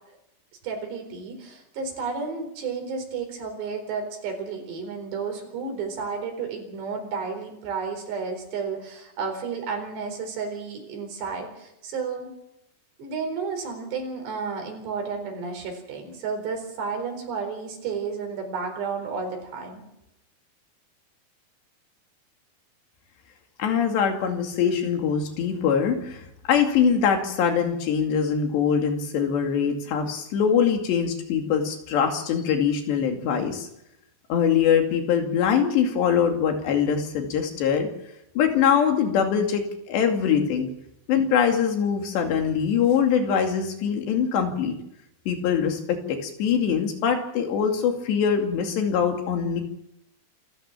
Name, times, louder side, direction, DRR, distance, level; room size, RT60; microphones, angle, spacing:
voice 1, 0.6-12.3 13.0-19.8, right 5 dB, 80° right, 4 dB, 6.5 m, -32 dB
voice 2, 23.6-33.7 34.3-37.9 38.4-40.7 41.1-44.8 45.3-49.6, left 7 dB, 85° left, 4 dB, 4.6 m, -23 dB
27.5 x 14.5 x 7.4 m, 0.83 s
omnidirectional pair, 4.9 m